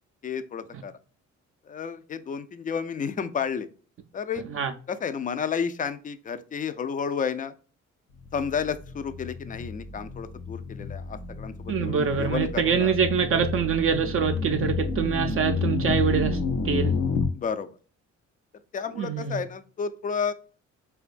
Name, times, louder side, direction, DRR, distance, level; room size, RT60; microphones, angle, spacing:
voice 1, 0.2-0.9 1.7-3.7 4.1-4.4 4.9-7.5 8.3-12.9 17.3-17.7 18.7-20.3, left 6 dB, 30° left, 0.3 m, -31 dB
sound 1, 8.2-17.3, left 4 dB, 85° left, 0.6 m, -30 dB
voice 2, 11.7-16.4 16.6-16.9 19.0-19.4, right 7 dB, 45° right, 0.4 m, -25 dB
4.3 x 2.2 x 2.4 m
cardioid pair, 90°, 30 cm